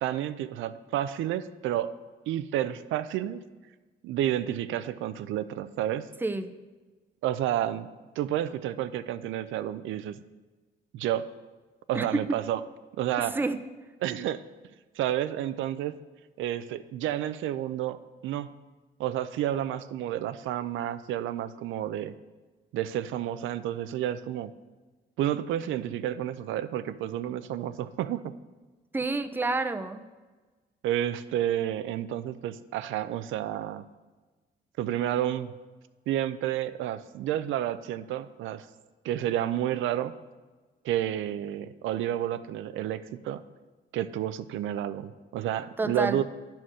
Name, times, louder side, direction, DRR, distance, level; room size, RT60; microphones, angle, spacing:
voice 1, 0.0-1.9 2.3-3.4 4.0-6.1 7.2-7.9 8.2-10.2 10.9-11.2 11.9-12.6 13.0-13.4 14.0-14.4 15.0-16.0 16.4-18.5 19.0-22.1 22.7-24.5 25.2-28.3 30.8-33.8 34.8-35.5 36.1-38.7 39.0-40.1 40.8-43.4 43.9-46.2, right 11 dB, 80° right, 13 dB, 0.4 m, -30 dB
voice 2, 28.9-30.0 45.8-46.2, right 3 dB, 10° right, 9 dB, 0.5 m, -28 dB
9.3 x 4.4 x 6.1 m, 1.3 s
cardioid pair, 90°, 20 cm